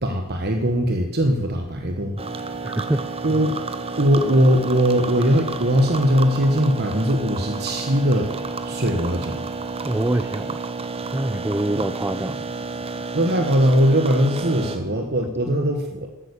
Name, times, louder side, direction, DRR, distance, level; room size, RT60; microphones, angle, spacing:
voice 1, 0.0-2.6 3.2-3.6 4.0-8.3 8.6-9.4 11.7-11.8 13.1-16.1, equal, 50° right, 4 dB, 1.3 m, -20 dB
sound 1, 2.2-14.8, right 4 dB, 25° right, 1.0 m, -31 dB
voice 2, 2.6-3.0 9.8-10.6 11.1-12.5, right 1 dB, 10° right, 12 dB, 0.4 m, -25 dB
13.5 x 9.1 x 8.5 m, 1.2 s
head